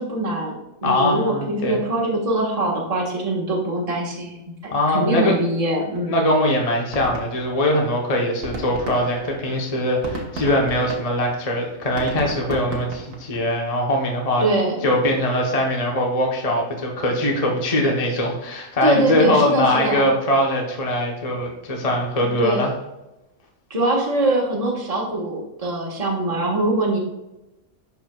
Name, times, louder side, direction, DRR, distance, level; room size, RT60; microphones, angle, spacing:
voice 1, 0.0-4.4 4.6-6.1 14.4-14.7 18.8-20.1 22.4-22.6 23.7-27.0, right 1 dB, 25° right, -2 dB, 1.5 m, -23 dB
voice 2, 0.8-1.8 4.7-5.3 6.1-14.4 14.8-22.7, left 1 dB, 30° left, 0 dB, 1.0 m, -21 dB
sound 1, 5.9-6.0 6.3-6.4 6.7-8.0 8.3-13.6, right 2 dB, 70° right, 1.8 m, -33 dB
11.0 x 4.5 x 2.3 m, 0.96 s
omnidirectional pair, 1.5 m